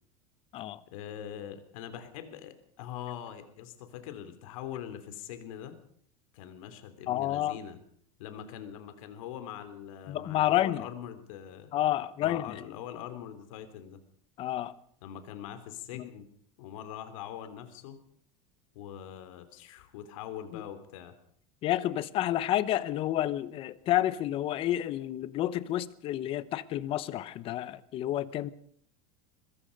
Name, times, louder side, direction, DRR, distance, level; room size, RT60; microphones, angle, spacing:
voice 1, 0.9-5.8 6.3-7.8 8.2-11.7 12.2-14.0 15.0-16.3 16.6-18.0 18.7-21.1, left 10 dB, 70° left, 9 dB, 3.3 m, -43 dB
voice 2, 7.1-7.6 10.1-10.9 11.7-12.6 14.4-14.7 20.5-20.6 21.6-28.5, left 13 dB, 30° left, 17 dB, 0.9 m, -30 dB
22.5 x 21.5 x 5.3 m, 0.63 s
supercardioid pair, 170°, 18 cm